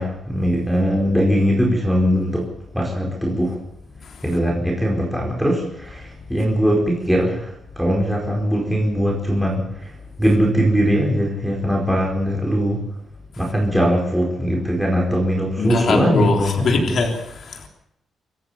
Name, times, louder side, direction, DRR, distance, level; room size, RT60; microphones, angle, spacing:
voice 1, 0.0-2.5 2.7-3.6 4.2-12.8 13.4-17.1, equal, ahead, -3 dB, 4.8 m, -20 dB
voice 2, 15.6-17.1 17.4-17.7, left 4 dB, 50° left, 2 dB, 3.5 m, -21 dB
26.5 x 14.0 x 7.1 m, 0.82 s
wide cardioid pair, 155°, 0 cm